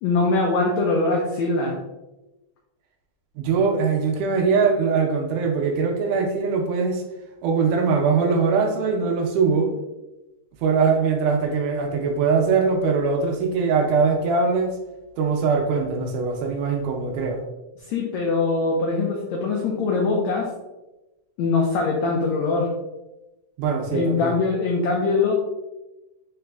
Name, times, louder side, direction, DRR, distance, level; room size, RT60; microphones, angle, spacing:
voice 1, 0.0-1.8 17.9-20.5 21.4-22.7 23.9-25.3, left 3 dB, 90° left, -1 dB, 1.5 m, -22 dB
voice 2, 3.4-7.0 7.4-9.7 10.6-14.7 15.2-17.4 23.6-24.3, right 5 dB, 80° right, 2 dB, 2.0 m, -21 dB
5.0 x 4.0 x 2.3 m, 1.0 s
omnidirectional pair, 3.9 m